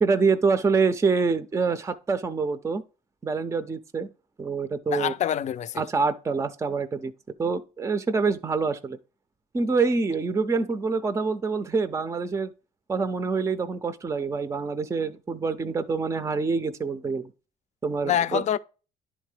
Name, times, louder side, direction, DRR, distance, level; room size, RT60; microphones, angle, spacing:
voice 1, 0.0-2.8 3.2-4.1 4.4-5.1 5.8-7.1 7.4-9.0 9.5-12.5 12.9-17.3 17.8-18.4, right 4 dB, 15° right, 0.5 m, -26 dB
voice 2, 4.9-5.8 18.0-18.6, left 10 dB, 45° left, 0.4 m, -26 dB
10.0 x 3.7 x 3.3 m
cardioid pair, 110°, 17 cm